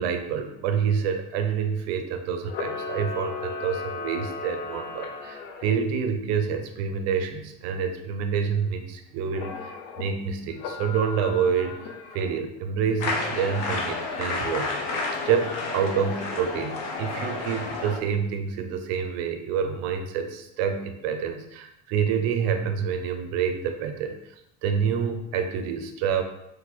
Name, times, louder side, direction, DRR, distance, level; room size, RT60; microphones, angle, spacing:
voice 1, 0.0-11.8 12.1-14.8 15.3-24.3 24.6-26.2, right 7 dB, 55° right, 6 dB, 0.6 m, -27 dB
Camera, 2.4-5.7 9.3-10.0 10.6-12.4, left 4 dB, 85° left, 0.8 m, -36 dB
sound 1, 13.0-18.0, left 3 dB, 50° left, 0.8 m, -30 dB
4.3 x 2.6 x 4.0 m, 0.83 s
cardioid pair, 175°, 31 cm